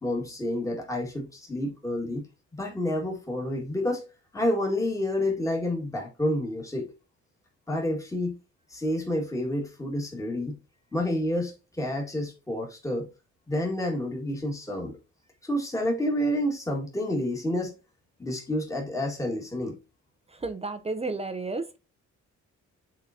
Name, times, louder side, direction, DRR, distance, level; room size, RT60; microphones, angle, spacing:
voice 1, 0.0-2.3 2.5-4.1 4.3-6.9 7.7-8.4 8.7-10.6 10.9-13.1 13.5-15.0 15.4-17.7 18.2-19.8, left 1 dB, 10° left, 1.9 m, -29 dB
voice 2, 20.3-21.8, right 3 dB, 20° right, 0.6 m, -32 dB
8.9 x 3.9 x 2.7 m
cardioid pair, 90°, 30 cm